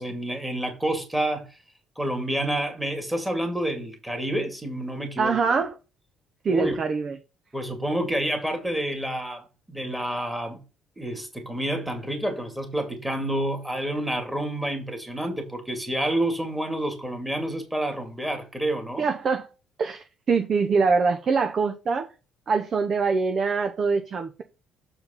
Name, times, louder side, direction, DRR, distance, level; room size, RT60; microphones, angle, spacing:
voice 1, 0.0-1.5 2.0-5.6 6.5-6.8 7.5-10.6 11.0-19.1, right 1 dB, 5° right, 2.2 m, -29 dB
voice 2, 5.2-5.7 6.4-7.2 19.0-19.5 19.8-22.1 22.5-24.4, right 4 dB, 35° right, 0.8 m, -24 dB
7.0 x 4.6 x 5.7 m
cardioid pair, 150°, 0 cm